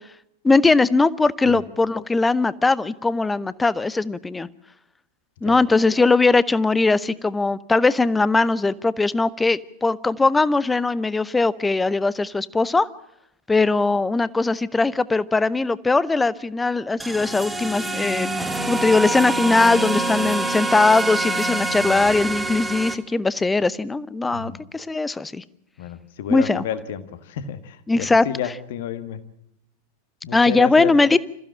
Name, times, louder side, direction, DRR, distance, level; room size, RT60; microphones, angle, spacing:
voice 1, 0.4-4.5 5.4-12.9 13.5-18.3 18.7-25.4 26.3-26.6 27.9-28.3 30.3-31.2, left 3 dB, 10° left, 19 dB, 0.7 m, -20 dB
sound 1, 17.0-22.9, right 2 dB, 5° right, 1.7 m, -25 dB
voice 2, 24.3-24.6 25.8-29.2 30.2-30.9, left 9 dB, 55° left, 11 dB, 1.7 m, -31 dB
26.5 x 15.0 x 7.4 m, 0.80 s
figure-of-eight pair, 90°, 0 cm